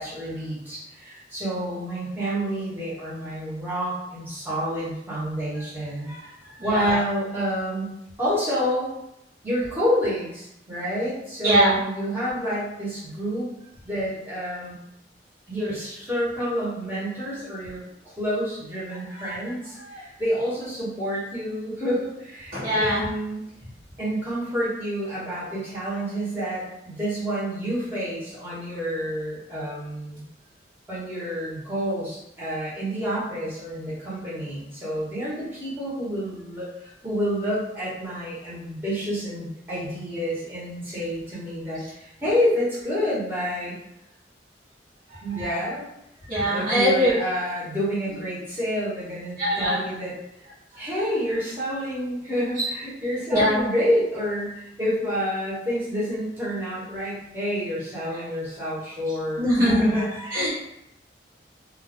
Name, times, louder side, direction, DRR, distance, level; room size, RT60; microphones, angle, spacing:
voice 1, 0.0-6.1 6.6-7.9 8.2-8.9 9.4-13.5 13.8-14.7 15.5-23.4 24.0-30.3 30.9-43.7 45.2-45.9 46.5-50.1 50.4-50.5 50.8-60.5, equal, 10° right, -11 dB, 1.1 m, -28 dB
voice 2, 11.4-11.8 19.9-20.0 22.5-23.0 45.1-45.5 46.3-47.1 49.4-49.8 52.6-52.7 53.3-53.6 59.4-60.5, equal, 50° right, -9 dB, 1.3 m, -22 dB
2.5 x 2.2 x 3.4 m, 0.81 s
head